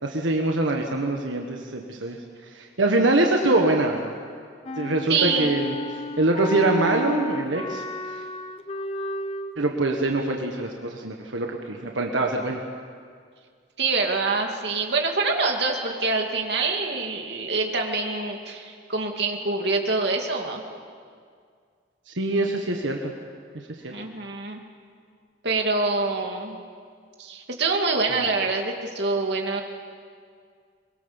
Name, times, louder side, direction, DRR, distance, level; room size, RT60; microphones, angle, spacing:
voice 1, 0.0-2.2 2.5-4.1 4.8-5.7 6.2-7.8 9.6-12.6 22.1-23.1 23.8-23.9 28.1-28.2, right 2 dB, 90° right, 2 dB, 1.6 m, -24 dB
Wind instrument woodwind instrument, 4.7-9.5, left 1 dB, 30° left, 0.9 m, -32 dB
voice 2, 5.1-5.5 13.8-20.6 23.9-24.6 25.4-26.6 27.2-29.6, right 3 dB, 65° right, 2 dB, 2.5 m, -25 dB
23.5 x 21.5 x 7.2 m, 2.1 s
head